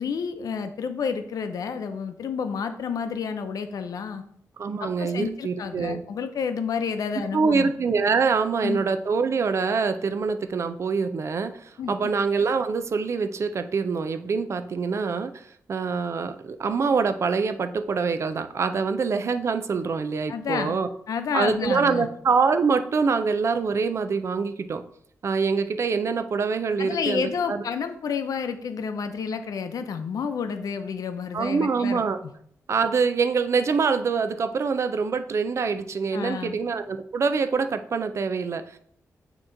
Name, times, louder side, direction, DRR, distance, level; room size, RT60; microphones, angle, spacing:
voice 1, 0.0-4.2 4.8-7.7 8.6-8.8 11.8-11.9 20.3-20.8 21.1-22.1 26.8-32.0 36.1-36.6, left 6 dB, 90° left, 8 dB, 0.6 m, -30 dB
voice 2, 4.6-6.0 7.3-20.9 21.3-24.8 25.2-27.6 31.3-32.2 32.7-38.8, right 5 dB, 50° right, 9 dB, 0.4 m, -25 dB
8.6 x 3.0 x 3.8 m, 0.67 s
wide cardioid pair, 130°, 6 cm